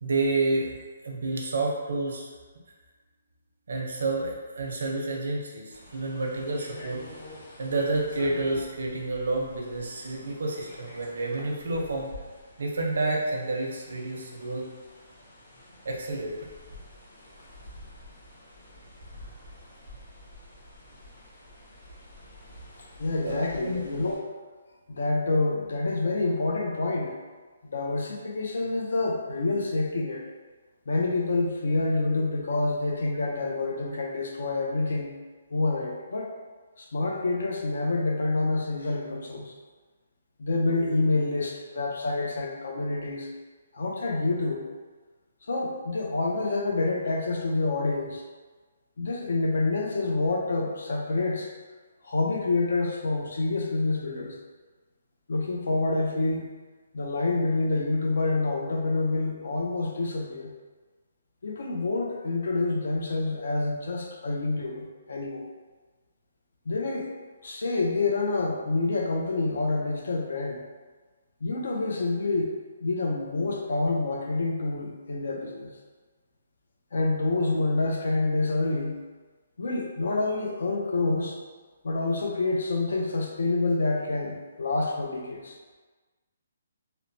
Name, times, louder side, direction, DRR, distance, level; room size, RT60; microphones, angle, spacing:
voice 1, 0.0-0.7 1.0-2.3 3.7-7.0 7.6-12.1 12.6-14.6 15.8-16.3 23.2-23.8, right 2 dB, 75° right, -1 dB, 0.6 m, -29 dB
sound 1, 5.7-24.2, left 1 dB, 50° left, 1.0 m, -49 dB
voice 2, 23.0-24.2 24.9-27.2 27.7-30.2 30.9-35.1 35.5-36.3 36.8-39.5 40.4-43.3 43.7-44.6 45.5-48.2 49.0-51.5 52.0-54.4 55.3-56.5 56.9-60.5 61.4-65.5 66.7-67.1 67.4-70.6 71.4-72.5 72.8-75.7 76.9-79.0 79.6-81.4 81.8-85.6, left 3 dB, 70° left, 1 dB, 0.5 m, -27 dB
2.9 x 2.0 x 2.6 m, 1.4 s
hypercardioid pair, 175°, 0 cm